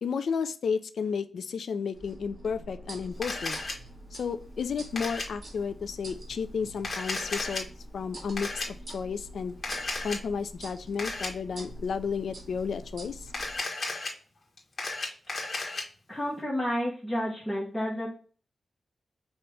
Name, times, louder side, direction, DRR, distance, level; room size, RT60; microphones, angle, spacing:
voice 1, 0.0-3.6 4.1-7.7 7.9-9.6 10.0-13.3, left 6 dB, 80° left, 11 dB, 0.4 m, -32 dB
sound 1, 1.9-13.6, right 1 dB, 50° right, 1.9 m, -45 dB
Camera, 3.2-3.7 5.0-5.3 6.8-7.6 8.4-8.7 9.6-10.2 11.0-11.3 13.3-14.1 14.6-15.8, left 2 dB, 50° left, 1.4 m, -33 dB
voice 2, 16.1-18.1, equal, 5° left, -6 dB, 1.3 m, -30 dB
5.4 x 2.8 x 3.2 m, 0.41 s
wide cardioid pair, 110°, 0 cm